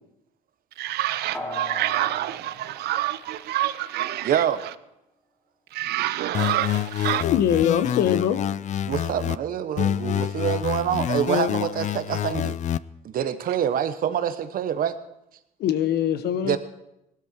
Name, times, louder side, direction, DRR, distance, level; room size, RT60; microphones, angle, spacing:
voice 1, 0.8-4.7 5.7-7.3, right 14 dB, 75° right, 0.7 m, -27 dB
sound 1, 1.3-3.9 4.3-4.4, equal, 15° left, 3.7 m, -39 dB
voice 2, 4.2-4.6 8.8-12.6 13.0-15.0 16.4-16.6, right 9 dB, 60° right, 1.2 m, -26 dB
sound 2, 6.3-9.4 9.8-12.8, left 10 dB, 45° left, 0.4 m, -27 dB
voice 3, 7.2-8.4 15.6-16.6, left 10 dB, 70° left, 1.1 m, -22 dB
19.0 x 12.5 x 4.5 m
cardioid pair, 110°, 17 cm